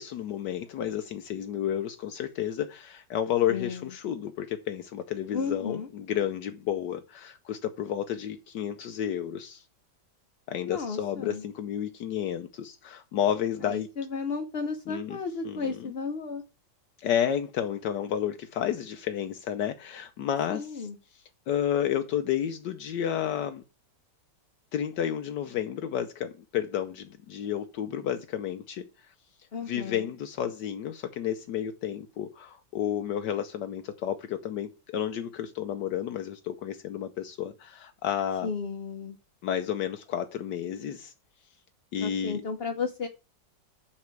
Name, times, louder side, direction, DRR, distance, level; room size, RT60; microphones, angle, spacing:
voice 1, 0.0-9.6 10.5-13.9 14.9-15.2 15.4-15.9 17.0-20.9 21.5-23.6 24.7-28.8 29.7-38.5 39.4-41.1 41.9-42.4, left 10 dB, 75° left, 1.3 m, -31 dB
voice 2, 3.5-3.9 5.3-5.9 10.6-11.4 13.6-16.4 20.5-21.0 29.5-30.1 38.4-39.2 42.0-43.1, left 5 dB, 45° left, 0.9 m, -33 dB
7.3 x 6.1 x 4.6 m
omnidirectional pair, 1.9 m